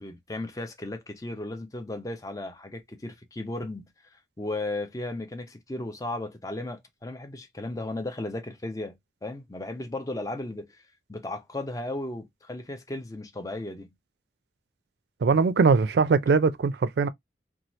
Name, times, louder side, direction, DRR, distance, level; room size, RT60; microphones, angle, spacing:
voice 1, 0.0-13.9, left 2 dB, 20° left, 0.5 m, -35 dB
voice 2, 15.2-17.1, right 4 dB, 65° right, 0.4 m, -21 dB
2.8 x 2.3 x 3.0 m
head